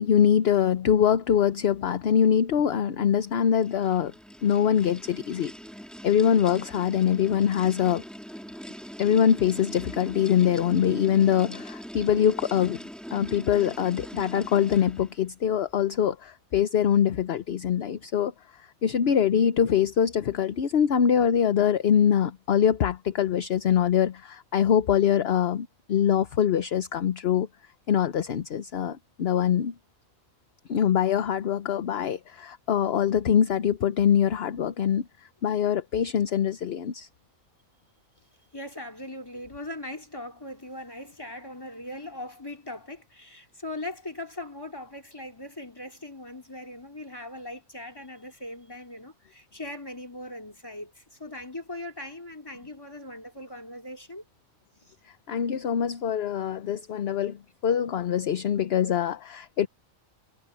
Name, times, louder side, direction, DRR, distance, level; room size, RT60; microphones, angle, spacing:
voice 1, 0.0-4.1 4.4-5.5 6.0-8.0 9.0-12.8 13.1-18.3 18.6-27.5 27.9-29.7 30.7-35.1 35.4-37.1 55.3-59.7, left 9 dB, 55° left, 0.9 m, -23 dB
sound 1, 3.1-15.2, equal, ahead, 3.0 m, -42 dB
voice 2, 38.5-54.2 54.8-54.9, left 1 dB, 15° left, 3.1 m, -40 dB
omnidirectional pair, 1.4 m